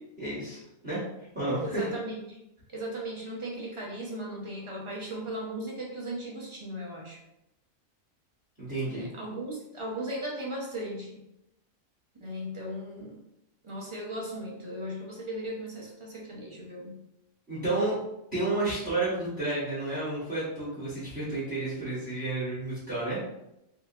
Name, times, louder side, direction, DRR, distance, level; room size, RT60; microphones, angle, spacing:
voice 1, 0.2-0.6 0.8-1.9 8.6-9.1 17.5-18.0 18.3-23.2, right 2 dB, 5° right, -10 dB, 1.3 m, -31 dB
voice 2, 1.6-2.4 2.7-7.2 8.8-11.2 12.2-13.2 13.6-17.0, right 1 dB, 35° right, -3 dB, 0.5 m, -37 dB
3.7 x 2.7 x 2.7 m, 0.84 s
omnidirectional pair, 1.4 m